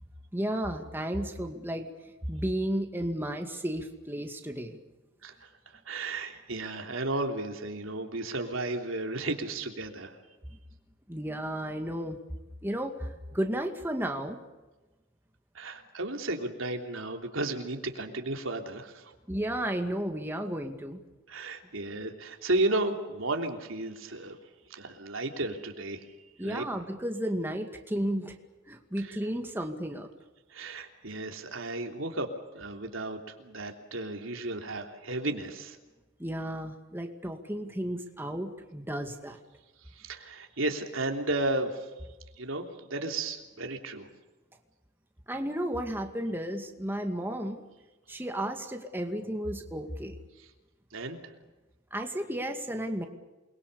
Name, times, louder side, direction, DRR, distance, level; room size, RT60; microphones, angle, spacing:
voice 1, 0.3-1.9 2.3-4.8 11.1-12.2 12.6-14.4 19.3-21.0 26.4-28.3 28.7-30.1 36.2-39.4 45.3-47.6 48.1-50.2 51.9-53.1, right 1 dB, 10° right, 4 dB, 2.2 m, -33 dB
voice 2, 5.8-10.2 15.5-19.1 21.3-24.4 24.7-26.6 29.0-29.2 30.5-35.8 39.9-41.9 42.4-44.1 50.9-51.3, right 2 dB, 80° right, 4 dB, 3.3 m, -33 dB
28.5 x 22.0 x 7.0 m, 1.1 s
head